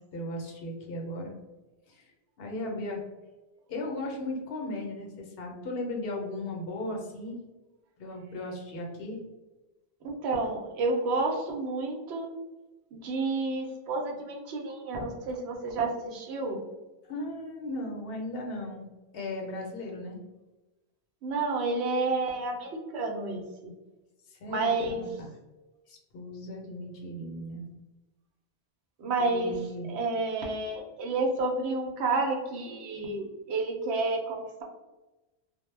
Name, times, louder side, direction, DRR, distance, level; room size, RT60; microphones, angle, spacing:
voice 1, 0.1-1.3 1.9-2.1 2.4-3.0 3.7-7.4 8.0-9.2 17.1-18.9 19.1-20.2 24.3-25.3 25.9-27.7 29.2-29.9, left 1 dB, 65° left, 1 dB, 0.8 m, -36 dB
voice 2, 10.0-12.3 12.9-16.6 21.2-23.7 24.5-25.0 29.0-29.5 29.9-34.6, right 3 dB, 75° right, 1 dB, 0.8 m, -30 dB
2.1 x 2.1 x 3.1 m, 1.1 s
omnidirectional pair, 1.1 m